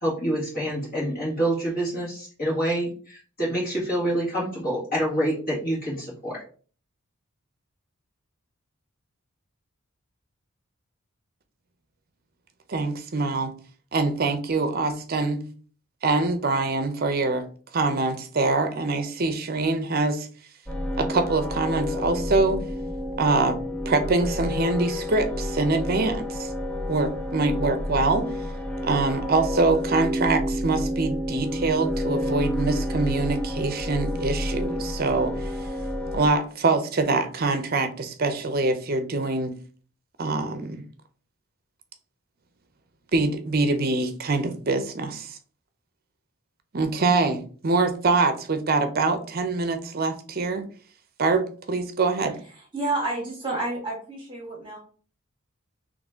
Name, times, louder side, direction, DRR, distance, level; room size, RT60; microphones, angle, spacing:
voice 1, 0.0-6.4, right 1 dB, 45° left, -6 dB, 1.9 m, -27 dB
voice 2, 12.7-13.5 13.9-15.4 16.0-17.4 17.7-20.3 21.0-22.6 23.2-23.6 23.9-26.5 26.9-28.3 28.8-35.5 36.1-39.5 40.2-40.8 43.1-45.3 46.7-50.7 51.2-52.4, right 3 dB, 45° right, 8 dB, 0.6 m, -24 dB
sound 1, 20.7-36.3, left 1 dB, 5° left, 0.4 m, -29 dB
voice 3, 52.5-54.8, right 2 dB, 25° right, -3 dB, 1.2 m, -30 dB
4.0 x 3.1 x 3.5 m, 0.42 s
head